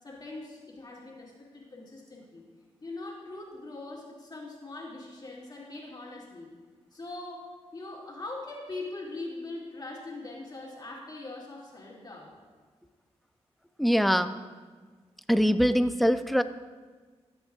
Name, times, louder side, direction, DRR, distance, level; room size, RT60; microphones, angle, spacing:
voice 1, 0.0-2.5 2.8-6.5 6.9-12.3, left 2 dB, 35° left, -4 dB, 2.4 m, -41 dB
voice 2, 13.8-14.3 15.3-16.4, equal, ahead, 11 dB, 0.5 m, -23 dB
15.5 x 8.1 x 2.4 m, 1.4 s
cardioid pair, 75°, 12 cm